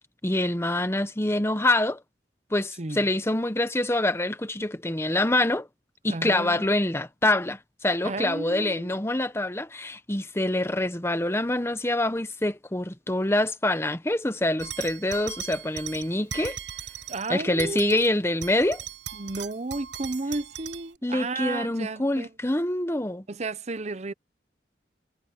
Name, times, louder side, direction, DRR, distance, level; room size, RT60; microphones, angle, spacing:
voice 1, 0.2-2.0 2.5-5.7 6.0-16.6 17.3-18.8 21.0-23.2, left 1 dB, 15° left, 1.0 m, -25 dB
voice 2, 6.1-6.7 8.0-9.0 17.1-18.0 19.1-22.3 23.3-24.1, right 3 dB, 40° right, 0.7 m, -33 dB
sound 1, 14.6-17.3 17.6-18.1 18.4-20.9, right 8 dB, 85° right, 7.5 m, -38 dB
head